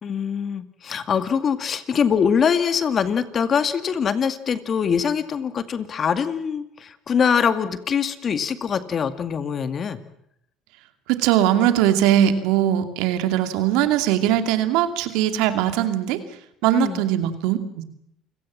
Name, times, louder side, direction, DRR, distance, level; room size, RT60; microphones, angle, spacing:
voice 1, 0.0-10.0 16.7-17.0, left 7 dB, 40° left, 11 dB, 2.2 m, -23 dB
voice 2, 11.1-16.2 16.6-17.8, right 11 dB, 75° right, 8 dB, 2.6 m, -20 dB
28.5 x 18.0 x 7.6 m, 0.76 s
supercardioid pair, 80°, 0 cm